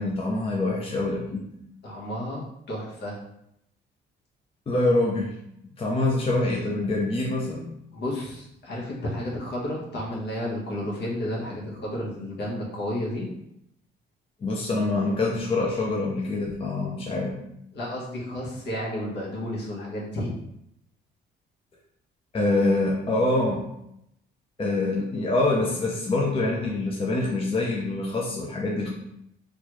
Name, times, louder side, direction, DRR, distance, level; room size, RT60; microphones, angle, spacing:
voice 1, 0.0-1.5 4.7-5.3 5.8-7.7 14.4-17.4 22.3-23.7 24.6-28.9, left 2 dB, 30° left, -2 dB, 0.5 m, -25 dB
voice 2, 1.8-3.2 7.9-13.3 17.7-20.4, left 1 dB, 60° left, -4 dB, 1.2 m, -32 dB
3.4 x 2.3 x 3.1 m, 0.79 s
cardioid pair, 90°, 20 cm